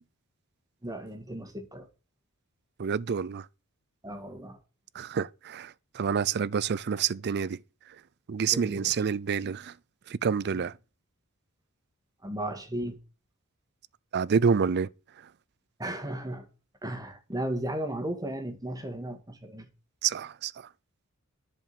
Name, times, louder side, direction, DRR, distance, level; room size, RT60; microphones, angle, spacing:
voice 1, 0.8-1.9 4.0-4.6 8.5-8.9 10.5-10.6 12.2-13.0 15.8-16.5 16.8-19.7, right 1 dB, 15° right, 1.8 m, -35 dB
voice 2, 2.8-3.5 4.9-7.6 8.3-9.8 10.1-10.7 14.1-14.9 20.0-20.7, right 6 dB, 50° right, 0.4 m, -28 dB
11.0 x 5.1 x 6.8 m
head